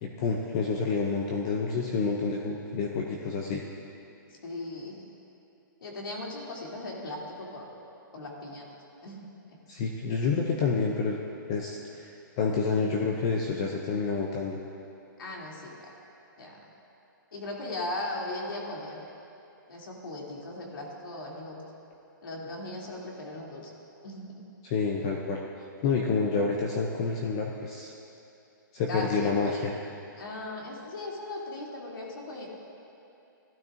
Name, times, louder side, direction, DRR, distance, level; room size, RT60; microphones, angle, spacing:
voice 1, 0.0-3.6 9.7-11.2 11.5-14.6 24.6-25.4 25.8-27.9 28.7-29.7, left 4 dB, 15° left, 0 dB, 0.3 m, -28 dB
voice 2, 4.3-5.0 5.8-7.6 8.1-8.7 9.0-9.3 15.2-15.9 16.4-16.6 17.3-19.0 19.7-21.6 22.2-23.7 24.0-24.4 28.9-29.5 30.2-32.5, left 2 dB, 85° left, -2 dB, 2.5 m, -38 dB
15.5 x 12.0 x 2.5 m, 2.8 s
hypercardioid pair, 180°, 11 cm